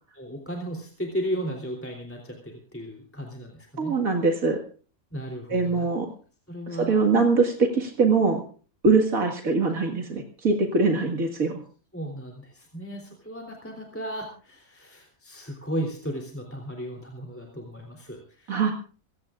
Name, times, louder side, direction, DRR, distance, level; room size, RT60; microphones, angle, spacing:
voice 1, 0.1-4.0 5.1-5.9 6.5-6.9 11.9-18.6, equal, 10° left, 1 dB, 3.2 m, -35 dB
voice 2, 3.8-4.6 5.5-6.1 6.8-8.4 8.8-11.6 18.5-18.7, right 4 dB, 80° right, 3 dB, 2.4 m, -22 dB
26.5 x 16.5 x 2.5 m, 0.40 s
omnidirectional pair, 1.4 m